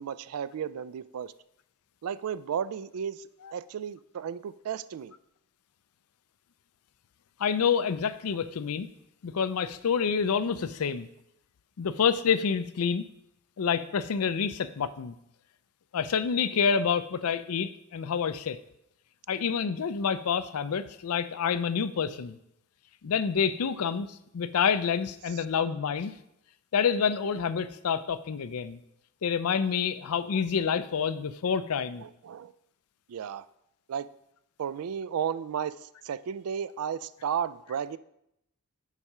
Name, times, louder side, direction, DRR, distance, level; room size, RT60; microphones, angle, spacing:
voice 1, 0.0-1.3 2.0-5.1 32.0-32.5 33.1-33.4 33.9-34.1 34.6-38.0, right 8 dB, 70° right, 0.3 m, -34 dB
voice 2, 7.4-8.9 9.2-11.1 11.8-13.1 13.6-15.2 15.9-18.6 19.3-22.4 23.0-26.1 26.7-28.8 29.2-32.0, left 6 dB, 75° left, 0.5 m, -28 dB
7.3 x 4.9 x 5.5 m
head